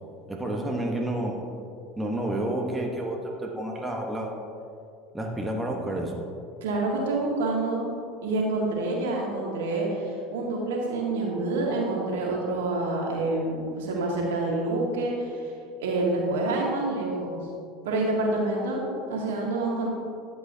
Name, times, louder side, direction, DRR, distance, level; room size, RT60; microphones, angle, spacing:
voice 1, 0.3-1.5 2.0-4.3 5.1-6.3, right 1 dB, 10° right, 0 dB, 1.1 m, -30 dB
voice 2, 6.6-7.8 8.2-15.5 15.8-17.4 17.8-19.9, right 2 dB, 70° right, -2 dB, 1.8 m, -27 dB
11.5 x 7.6 x 2.8 m, 2.4 s
figure-of-eight pair, 75°, 0 cm